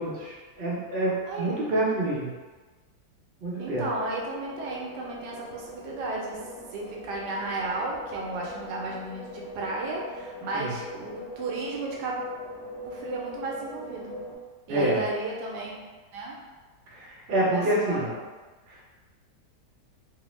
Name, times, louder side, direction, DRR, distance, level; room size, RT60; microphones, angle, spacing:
voice 1, 0.0-2.3 3.4-3.8 10.5-10.7 14.7-15.0 16.9-18.1 18.7-18.8, right 1 dB, 50° right, -6 dB, 0.6 m, -27 dB
voice 2, 1.2-1.6 3.6-6.4 6.7-12.2 12.8-14.2 14.7-15.8 16.1-16.4 17.3-18.2, right 2 dB, 75° right, -2 dB, 1.2 m, -34 dB
sound 1, 3.6-14.4, left 1 dB, 75° left, 1.4 m, -42 dB
3.1 x 2.1 x 3.0 m, 1.3 s
omnidirectional pair, 1.9 m